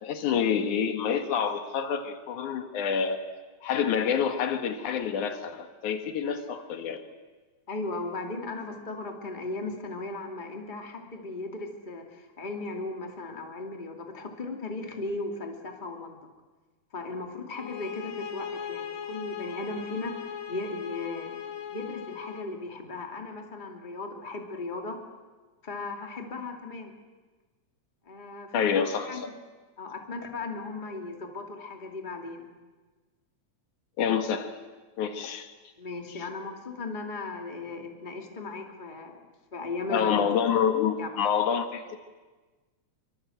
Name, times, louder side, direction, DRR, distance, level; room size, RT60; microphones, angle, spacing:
voice 1, 0.0-3.2 3.6-7.0 28.5-29.1 34.0-34.5 35.0-35.5 39.9-42.0, left 7 dB, 85° left, 7 dB, 3.0 m, -27 dB
voice 2, 7.7-16.2 16.9-20.2 20.5-21.4 21.7-25.0 25.6-26.9 28.0-29.4 29.8-32.5 35.8-39.2 39.5-40.3 41.0-41.1, left 3 dB, 15° left, 3 dB, 2.3 m, -37 dB
sound 1, 17.5-22.5, left 8 dB, 50° left, 1.8 m, -38 dB
25.0 x 24.0 x 7.9 m, 1.3 s
omnidirectional pair, 3.4 m